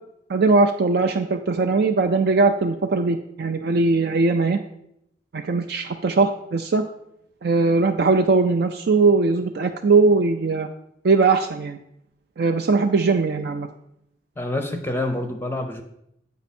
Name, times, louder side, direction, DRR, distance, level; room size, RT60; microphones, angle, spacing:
voice 1, 0.3-4.6 5.3-6.8 7.4-10.7 11.0-11.8 12.4-13.7, right 3 dB, 55° right, 5 dB, 0.4 m, -20 dB
voice 2, 14.4-15.8, left 1 dB, 10° left, 5 dB, 0.6 m, -27 dB
8.1 x 5.3 x 4.2 m, 0.77 s
head